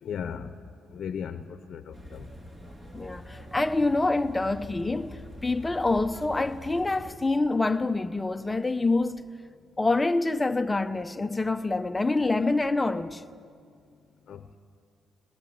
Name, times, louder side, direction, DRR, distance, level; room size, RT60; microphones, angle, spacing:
voice 1, 0.0-0.5 0.9-2.3 14.3-14.6, left 7 dB, 65° left, 0.9 m, -36 dB
sound 1, 1.9-7.1, left 1 dB, 30° right, 3.6 m, -45 dB
voice 2, 2.9-9.2 9.8-13.2, left 2 dB, 15° left, 0.8 m, -26 dB
21.5 x 20.5 x 7.9 m
cardioid pair, 90°, 0 cm